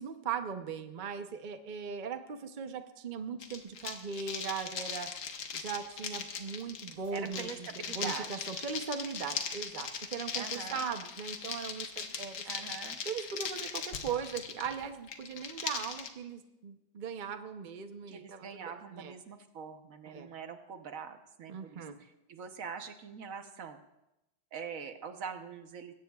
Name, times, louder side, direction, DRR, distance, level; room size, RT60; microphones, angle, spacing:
voice 1, 0.0-5.1 5.5-7.7 7.9-12.4 13.0-18.5 18.9-19.1 20.1-20.3 21.5-22.0, right 6 dB, 90° right, 7 dB, 0.4 m, -39 dB
sound 1, 3.4-16.1, left 6 dB, 60° left, 1.5 m, -39 dB
voice 2, 7.1-8.6 10.3-10.9 12.4-13.0 18.1-23.8 24.5-25.9, right 6 dB, 55° right, 7 dB, 1.1 m, -43 dB
21.0 x 16.5 x 2.4 m, 0.92 s
omnidirectional pair, 2.1 m